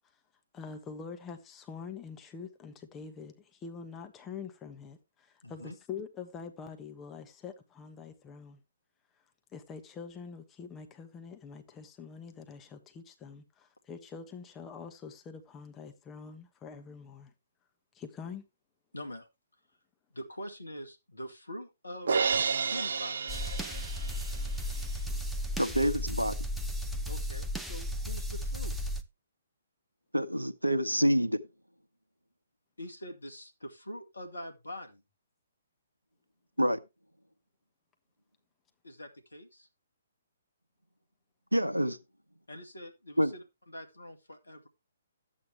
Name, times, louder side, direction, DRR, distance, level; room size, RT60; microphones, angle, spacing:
voice 1, 0.5-8.6 9.5-17.3 17.9-18.4, left 6 dB, 15° left, 1.3 m, -45 dB
voice 2, 5.4-5.8 18.9-19.3 20.1-22.1 22.6-23.2 27.1-28.7 32.8-35.0 38.8-39.7 42.5-44.7, equal, 75° left, 2.0 m, -44 dB
Crash cymbal, 22.1-24.3, right 5 dB, 60° right, 0.6 m, -30 dB
sound 1, 23.3-29.0, left 1 dB, ahead, 0.8 m, -34 dB
voice 3, 25.6-26.3 30.1-31.4 36.6-36.8 41.5-42.0 43.2-43.3, equal, 90° right, 1.0 m, -27 dB
11.5 x 8.5 x 3.2 m
figure-of-eight pair, 130°, 0 cm